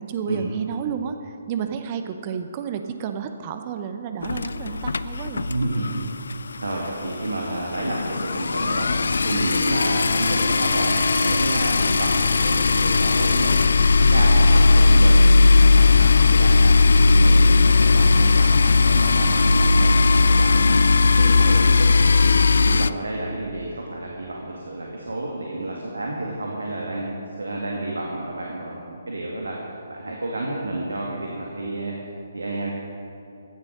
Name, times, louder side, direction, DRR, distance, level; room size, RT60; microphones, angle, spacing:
voice 1, 0.0-5.5 10.1-10.3 18.0-18.3, right 7 dB, 30° right, 7 dB, 0.8 m, -31 dB
sound 1, 4.2-6.0 6.3-6.5 6.8-6.9 7.1-22.9, left 3 dB, 65° left, 0.4 m, -17 dB
voice 2, 5.5-6.0 6.6-13.6 14.0-16.8 17.1-20.8 21.2-22.4 22.7-27.1 27.4-29.6 29.9-31.9 32.3-32.7, right 2 dB, 70° right, -2 dB, 2.1 m, -30 dB
16.5 x 10.5 x 6.5 m, 2.8 s
figure-of-eight pair, 135°, 0 cm